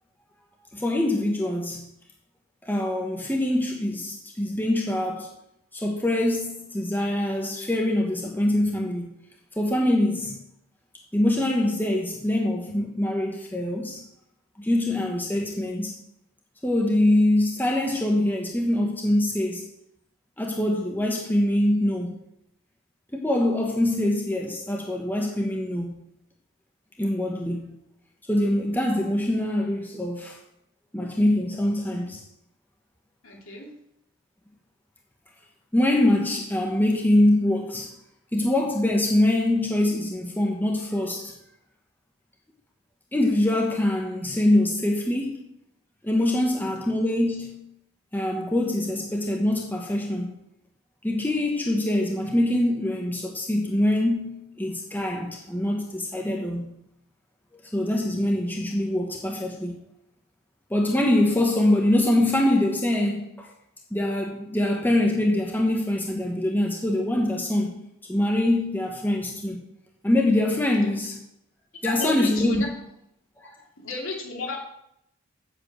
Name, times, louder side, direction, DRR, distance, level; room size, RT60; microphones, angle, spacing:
voice 1, 0.7-1.9 2.6-5.3 5.7-9.1 9.6-10.4 11.1-14.0 14.6-15.9 16.6-19.7 20.4-22.2 23.1-25.9 27.0-27.7 28.3-30.4 30.9-32.2 35.7-37.9 38.3-41.3 43.1-45.4 46.0-47.6 48.1-50.3 51.0-56.7 57.5-59.8 60.7-63.5 63.9-67.8 68.1-69.6 70.0-71.2 71.8-72.6, left 1 dB, 10° left, 0 dB, 1.2 m, -24 dB
voice 2, 33.2-33.7 71.8-72.7 73.4-73.5 73.8-74.6, left 3 dB, 70° left, -1 dB, 3.1 m, -33 dB
8.0 x 6.9 x 8.0 m, 0.78 s
head